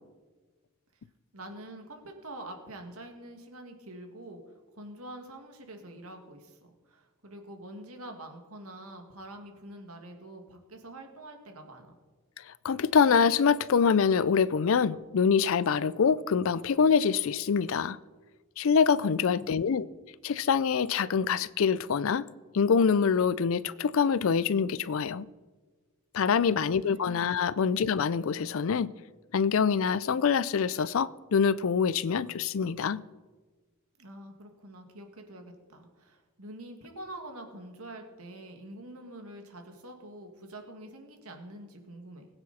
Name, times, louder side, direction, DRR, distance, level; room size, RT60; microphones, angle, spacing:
voice 1, 1.3-4.4 4.7-12.0 19.2-19.7 26.4-27.0 27.4-27.6 34.0-42.3, right 1 dB, 80° right, 4 dB, 2.1 m, -46 dB
voice 2, 12.6-18.0 18.6-19.9 20.2-22.2 22.5-25.3 26.1-28.9 29.3-33.0, left 6 dB, 65° left, 19 dB, 0.4 m, -25 dB
20.5 x 8.9 x 4.2 m, 1.3 s
head